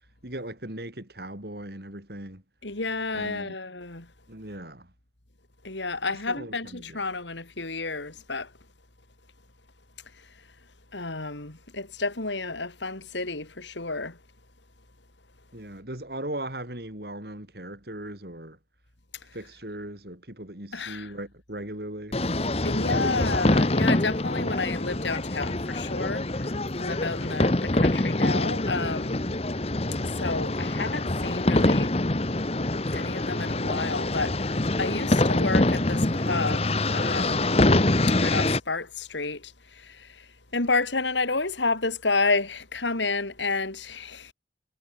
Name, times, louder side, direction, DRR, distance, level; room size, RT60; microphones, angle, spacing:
voice 1, 0.2-2.4 3.1-3.5 4.3-4.9 6.1-7.0 15.5-18.6 19.3-22.2, right 1 dB, 60° right, 4.6 m, -38 dB
voice 2, 2.6-4.1 5.6-8.5 10.9-14.2 20.7-21.1 22.6-29.2 30.0-31.9 32.9-37.6 38.1-40.3 40.5-44.3, left 3 dB, 85° left, 3.6 m, -30 dB
sound 1, 22.1-38.6, left 2 dB, 35° left, 1.2 m, -25 dB
head